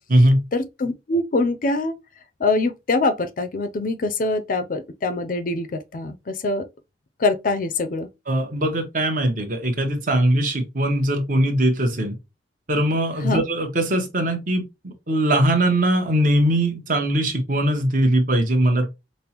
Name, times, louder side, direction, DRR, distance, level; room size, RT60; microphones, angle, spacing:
voice 1, 0.5-2.0 2.4-6.7 7.2-8.1 13.2-13.4, left 2 dB, 45° left, 0.4 m, -24 dB
voice 2, 8.3-12.1 12.7-18.9, right 1 dB, 45° right, 0.9 m, -20 dB
5.1 x 2.1 x 2.8 m
head